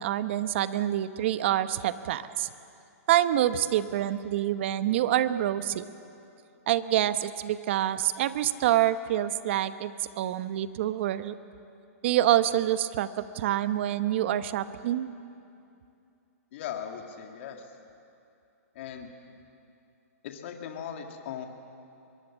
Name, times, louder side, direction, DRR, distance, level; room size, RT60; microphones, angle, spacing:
voice 1, 0.0-2.5 3.1-5.8 6.7-11.4 12.0-15.1, right 12 dB, 50° right, 13 dB, 0.9 m, -26 dB
voice 2, 16.5-17.7 18.7-19.1 20.2-21.5, left 8 dB, 50° left, 4 dB, 2.1 m, -38 dB
23.0 x 22.5 x 7.3 m, 2.6 s
hypercardioid pair, 145°, 8 cm